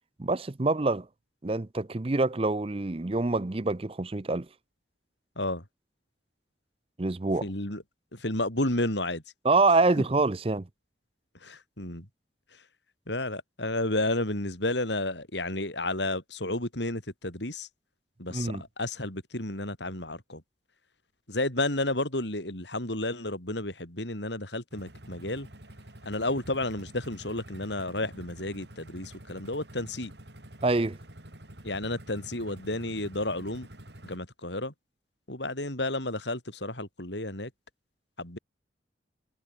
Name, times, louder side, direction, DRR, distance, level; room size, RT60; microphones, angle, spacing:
voice 1, 0.2-1.1 1.4-4.5 7.0-7.5 9.4-10.7 18.3-18.6 30.6-31.0, right 3 dB, 30° right, 0.6 m, -26 dB
voice 2, 7.4-7.8 8.1-9.2 11.4-12.1 13.1-17.7 18.2-20.4 21.3-25.5 26.1-30.1 31.6-33.7 34.0-34.7 35.3-37.5 38.2-38.4, left 2 dB, 75° left, 7.5 m, -32 dB
sound 1, 24.7-34.2, right 1 dB, 70° right, 4.8 m, -48 dB
head